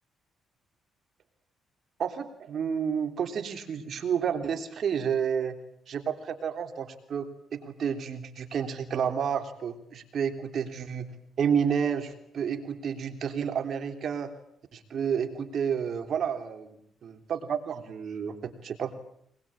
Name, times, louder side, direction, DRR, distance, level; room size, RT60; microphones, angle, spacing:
voice 1, 2.0-5.6 5.9-11.1 11.4-14.3 14.7-18.9, right 7 dB, 60° right, 7 dB, 3.4 m, -30 dB
23.5 x 22.0 x 8.8 m, 0.71 s
cardioid pair, 90°, 0 cm